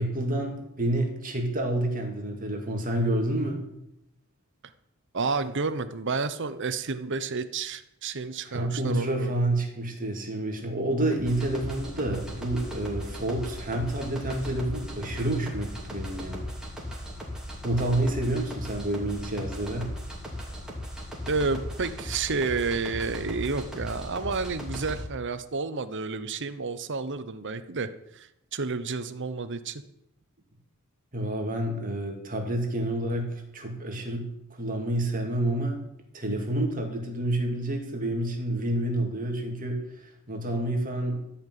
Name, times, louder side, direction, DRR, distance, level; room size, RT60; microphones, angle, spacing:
voice 1, 0.0-3.6 8.4-16.4 17.6-19.9 31.1-35.8 36.1-41.2, right 1 dB, 40° right, 2 dB, 2.2 m, -29 dB
voice 2, 5.1-9.3 21.3-29.8, right 4 dB, 55° right, 11 dB, 0.9 m, -30 dB
sound 1, 11.1-25.0, equal, 5° right, 2.9 m, -37 dB
14.0 x 5.9 x 9.2 m, 0.83 s
head